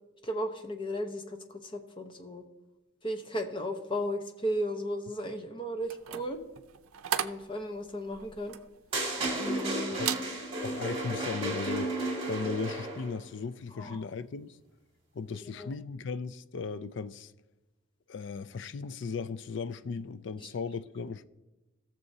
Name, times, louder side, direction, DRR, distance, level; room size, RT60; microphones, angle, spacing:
voice 1, 0.2-2.4 3.0-6.4 7.2-8.6 9.3-10.1 13.7-14.0 15.6-15.7 20.4-20.5, equal, 25° left, 0.9 m, -35 dB
sound 1, 5.8-9.7 10.0-10.3 10.8-11.0, right 9 dB, 85° right, 0.5 m, -36 dB
sound 2, 8.9-13.2, right 2 dB, 25° right, 2.2 m, -33 dB
voice 2, 10.6-12.0 12.3-14.6 15.1-17.3 18.1-21.2, left 5 dB, 55° left, 0.4 m, -36 dB
17.5 x 6.9 x 2.7 m
head